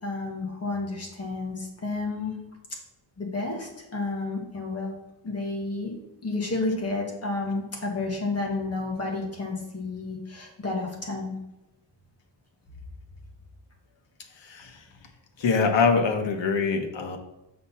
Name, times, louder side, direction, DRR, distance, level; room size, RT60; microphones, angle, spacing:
voice 1, 0.0-2.4 3.2-4.9 5.2-5.9 6.2-11.3, left 3 dB, 35° left, 0 dB, 1.5 m, -31 dB
voice 2, 14.4-14.8 15.4-17.2, left 5 dB, 75° left, 5 dB, 1.1 m, -24 dB
6.7 x 4.2 x 5.7 m, 0.91 s
wide cardioid pair, 175°, 44 cm